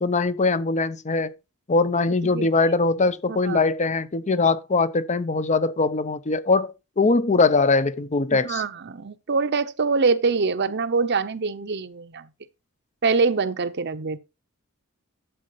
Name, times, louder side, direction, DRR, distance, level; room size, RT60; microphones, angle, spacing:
voice 1, 0.0-1.3 1.7-8.6, left 3 dB, 35° left, 0.6 m, -22 dB
voice 2, 3.3-3.6 8.3-12.3 13.0-14.2, right 4 dB, 55° right, 0.8 m, -24 dB
12.0 x 7.5 x 3.0 m
head